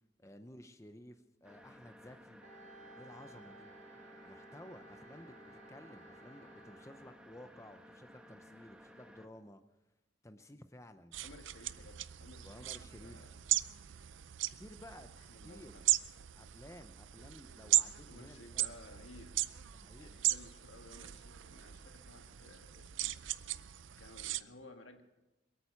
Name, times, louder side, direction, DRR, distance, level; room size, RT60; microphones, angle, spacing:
voice 1, 0.2-2.4 2.9-3.7 4.2-9.6 10.2-11.2 12.4-13.3 14.6-15.1 15.4-15.7 16.4-18.7 19.7-20.3, left 1 dB, 15° left, 8 dB, 0.6 m, -54 dB
sound 1, 1.4-9.3, equal, 5° right, 1.1 m, -57 dB
Wind instrument woodwind instrument, 2.4-7.2, right 2 dB, 40° right, 1.6 m, -57 dB
sound 2, 11.1-24.4, right 14 dB, 80° right, 0.5 m, -37 dB
voice 2, 11.2-12.7 13.0-13.4 15.3-15.9 18.1-19.4 20.0-23.2 23.8-25.0, left 2 dB, 80° left, 5 dB, 1.8 m, -56 dB
22.5 x 9.0 x 7.0 m, 1.0 s
head